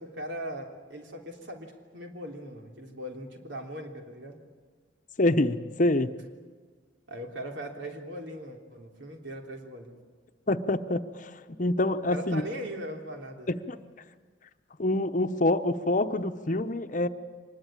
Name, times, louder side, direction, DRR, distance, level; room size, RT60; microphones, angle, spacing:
voice 1, 0.0-4.4 7.1-10.0 12.1-13.5, equal, 75° right, 2 dB, 3.4 m, -39 dB
voice 2, 5.2-6.1 10.5-11.3 11.6-12.4 13.5-13.8 14.8-17.1, left 1 dB, 45° left, 9 dB, 0.9 m, -26 dB
24.5 x 20.5 x 8.9 m, 1.5 s
head